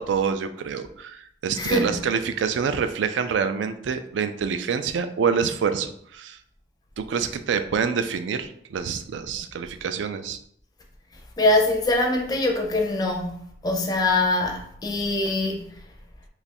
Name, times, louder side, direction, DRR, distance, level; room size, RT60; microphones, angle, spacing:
voice 1, 0.0-6.4 7.0-10.4, right 6 dB, 85° right, 0.3 m, -26 dB
voice 2, 1.6-2.0 11.4-15.8, left 2 dB, 20° left, 0.4 m, -23 dB
3.0 x 2.4 x 4.2 m
head